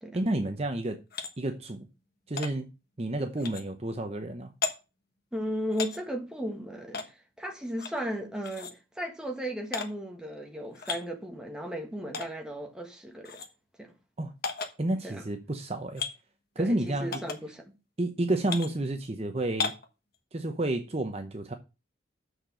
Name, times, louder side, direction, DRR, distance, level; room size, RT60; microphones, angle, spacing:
voice 1, 0.1-1.0 1.4-1.8 2.3-2.7 3.0-4.5 14.2-14.3 14.8-16.0 16.6-17.2 18.0-19.7 20.3-21.5, right 1 dB, 30° right, 0.8 m, -30 dB
sound 1, 1.1-1.3 2.4-2.5 3.4-3.6 4.6-4.7 5.7-6.0 6.9-7.1 7.8-8.0 8.4-8.7 9.7-9.9 10.7-11.0 12.1-12.3 13.2-13.5 14.4-14.7 16.0-16.1 17.1-17.4 18.5-18.7 19.6-19.9, left 5 dB, 50° left, 1.2 m, -33 dB
voice 2, 5.3-13.4 13.8-13.9 15.0-15.2 16.6-17.7, equal, 5° right, 1.4 m, -36 dB
6.7 x 6.4 x 6.3 m
head